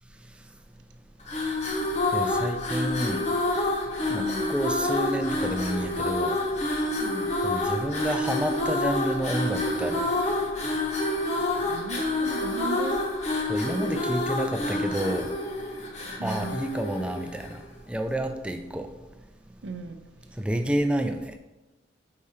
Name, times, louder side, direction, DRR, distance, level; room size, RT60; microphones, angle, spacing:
sound 1, 1.2-17.6, left 2 dB, 35° left, 0.9 m, -28 dB
voice 1, 2.1-3.2 4.1-6.4 7.4-10.0 13.5-15.3 16.2-17.6 17.9-18.9 20.4-21.2, right 1 dB, 5° right, 6 dB, 0.3 m, -29 dB
voice 2, 4.2-4.5 7.0-7.3 11.5-13.0 16.2-16.6 19.6-20.0, right 3 dB, 70° right, 7 dB, 0.5 m, -36 dB
4.8 x 4.6 x 4.2 m, 1.1 s
head